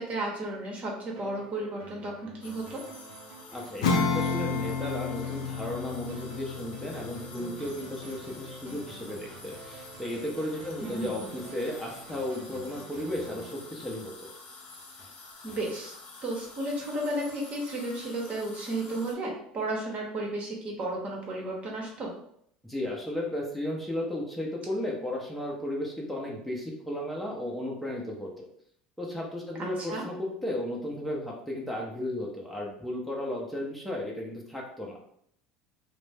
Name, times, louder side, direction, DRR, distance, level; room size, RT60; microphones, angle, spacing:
voice 1, 0.0-2.8 10.8-11.3 15.4-15.9 16.2-22.1 29.6-30.0, right 1 dB, 40° right, -1 dB, 0.9 m, -33 dB
sound 1, 1.2-14.7, right 3 dB, 65° right, 0.5 m, -48 dB
sound 2, 2.4-19.1, left 3 dB, 50° left, 0.7 m, -49 dB
voice 2, 3.5-14.1 22.6-28.5 29.0-35.0, left 1 dB, 5° left, -3 dB, 0.7 m, -34 dB
Acoustic guitar / Strum, 3.8-9.8, left 4 dB, 85° left, 0.4 m, -32 dB
2.5 x 2.0 x 3.3 m, 0.68 s
hypercardioid pair, 80°, 4 cm